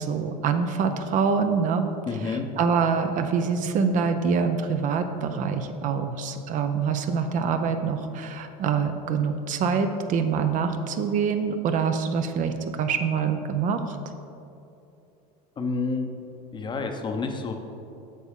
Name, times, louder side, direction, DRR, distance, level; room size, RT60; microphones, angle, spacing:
voice 1, 0.0-14.0, right 6 dB, 40° right, 7 dB, 0.5 m, -25 dB
voice 2, 2.1-2.5 15.6-16.1 16.5-17.5, left 4 dB, 25° left, 5 dB, 0.7 m, -29 dB
8.3 x 6.0 x 3.6 m, 2.7 s
supercardioid pair, 115°, 20 cm